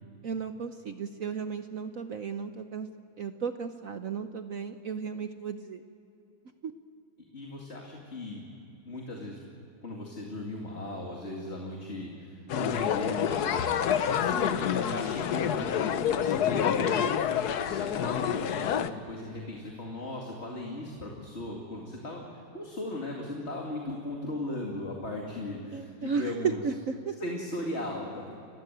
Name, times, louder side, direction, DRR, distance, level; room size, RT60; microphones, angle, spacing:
voice 1, 0.2-2.9 3.2-5.8 6.6-6.7 25.7-27.2, right 6 dB, 60° right, 8 dB, 0.9 m, -34 dB
voice 2, 7.3-8.4 8.9-9.4 9.8-13.7 14.0-17.2 17.5-26.6 27.2-28.3, left 1 dB, 30° left, -1 dB, 2.5 m, -37 dB
sound 1, 12.5-18.9, left 9 dB, 60° left, 1.2 m, -28 dB
30.0 x 16.0 x 9.2 m, 2.8 s
omnidirectional pair, 2.3 m